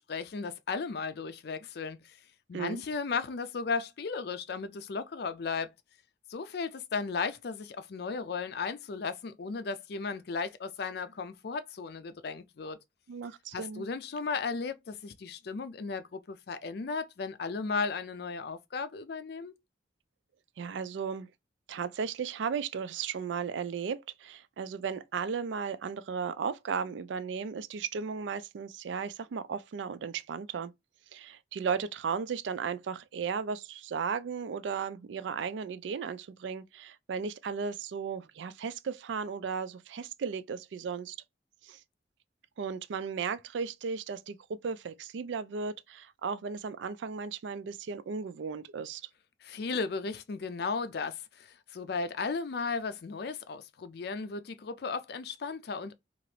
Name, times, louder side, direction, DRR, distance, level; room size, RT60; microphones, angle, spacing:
voice 1, 0.0-2.2 2.5-5.7 6.3-12.8 13.5-19.6 49.4-55.9, left 4 dB, 60° left, 0.4 m, -35 dB
voice 2, 13.1-13.8 20.6-21.3 21.7-30.7 31.1-41.2 41.6-41.8 42.6-49.0, right 6 dB, 75° right, 0.4 m, -35 dB
2.9 x 2.5 x 3.1 m
head